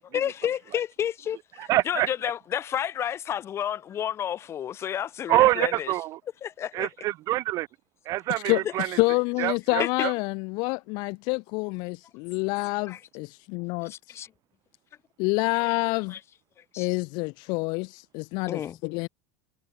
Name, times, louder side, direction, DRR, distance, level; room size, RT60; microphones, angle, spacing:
voice 1, 0.1-5.9 6.4-6.9 9.8-9.9 12.9-13.0 13.8-14.3 16.1-16.2 16.7-16.9 18.5-18.8, left 10 dB, 30° left, 2.7 m, -31 dB
voice 2, 1.7-2.1 5.3-6.2 6.7-7.7 8.1-8.9 9.4-10.1, right 16 dB, 40° right, 0.6 m, -25 dB
voice 3, 8.4-14.2 15.2-16.2 16.8-19.1, left 29 dB, 55° left, 0.7 m, -28 dB
supercardioid pair, 150°, 9 cm